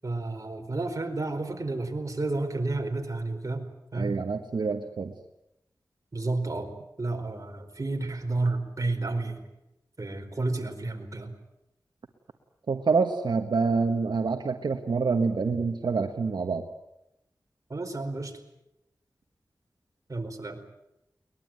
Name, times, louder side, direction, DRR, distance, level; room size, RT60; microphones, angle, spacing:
voice 1, 0.0-3.6 3.9-4.1 6.1-6.7 7.0-9.5 10.0-11.3 17.7-18.3 20.1-20.6, right 2 dB, 45° right, 4 dB, 4.7 m, -31 dB
voice 2, 3.9-5.1 12.7-16.6, right 4 dB, 85° right, 5 dB, 1.4 m, -26 dB
22.5 x 20.5 x 9.2 m, 0.88 s
wide cardioid pair, 65°, 7 cm